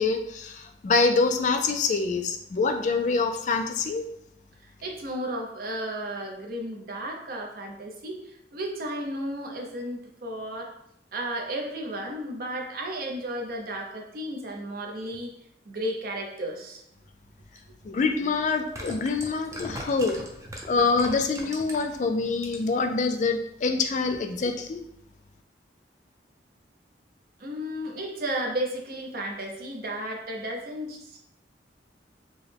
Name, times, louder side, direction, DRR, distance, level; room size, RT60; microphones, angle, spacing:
voice 1, 0.0-4.1 17.8-20.2 20.7-24.8, left 4 dB, 45° left, 6 dB, 0.3 m, -25 dB
voice 2, 4.8-10.7 11.1-15.3 15.7-16.8 27.4-31.2, right 1 dB, 55° right, 0 dB, 0.7 m, -33 dB
sound 1, 17.6-17.7 18.5-22.0 22.3-22.8 23.1-23.2, right 1 dB, 20° right, 0.5 m, -39 dB
4.6 x 2.1 x 3.3 m, 0.75 s
head